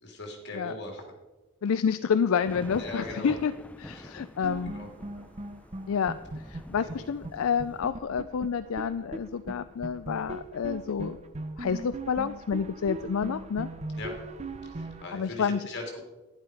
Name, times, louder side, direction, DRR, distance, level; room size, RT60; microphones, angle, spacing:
voice 1, 0.0-1.0 2.7-3.3 3.8-4.1 4.7-4.9 6.8-7.0 13.9-14.2 14.7-16.0, left 2 dB, 55° left, 2 dB, 2.6 m, -39 dB
voice 2, 1.6-3.5 3.8-4.7 5.9-6.2 6.5-11.2 11.6-13.7 15.1-15.6, left 6 dB, 75° left, 12 dB, 0.4 m, -29 dB
sound 1, 2.4-7.8, equal, 5° left, 0.5 m, -46 dB
sound 2, 4.4-7.0 7.2-7.3 7.6-9.2 9.5-9.6 9.8-15.0, right 2 dB, 30° right, 0.8 m, -39 dB
11.0 x 10.5 x 4.7 m, 1.1 s
head